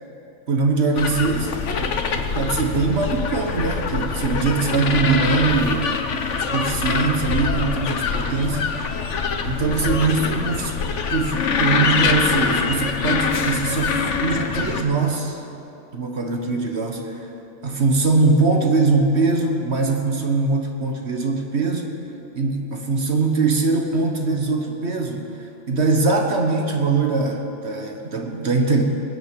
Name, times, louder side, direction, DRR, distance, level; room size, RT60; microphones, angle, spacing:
voice 1, 0.5-5.9 6.3-9.0 9.4-10.7 11.1-15.4 15.9-17.3 17.6-21.9 22.3-28.8, right 3 dB, 55° right, 3 dB, 1.6 m, -22 dB
sound 1, 0.9-14.8, left 5 dB, 70° left, 1.3 m, -24 dB
21.0 x 7.9 x 8.5 m, 2.9 s
omnidirectional pair, 1.3 m